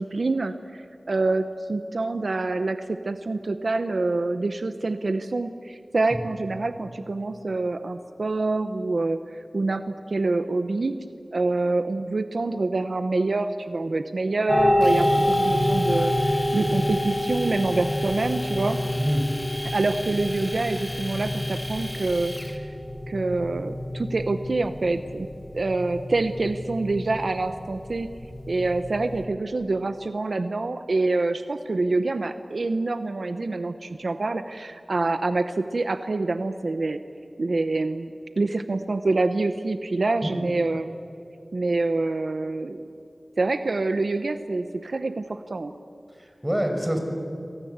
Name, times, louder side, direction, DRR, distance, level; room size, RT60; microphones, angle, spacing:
voice 1, 0.0-11.0 11.3-18.8 19.6-22.7 23.1-25.3 25.5-28.1 28.5-37.0 37.4-40.9 41.5-42.8 43.4-45.7, right 3 dB, 80° right, 9 dB, 1.0 m, -26 dB
sound 1, 14.5-29.2, left 1 dB, 45° left, 6.1 m, -27 dB
Domestic sounds home sounds, 14.8-22.6, left 1 dB, 20° left, 3.6 m, -38 dB
voice 2, 46.2-47.0, equal, 15° right, 4 dB, 5.8 m, -26 dB
28.5 x 23.5 x 8.2 m, 2.6 s
wide cardioid pair, 45°, 0 cm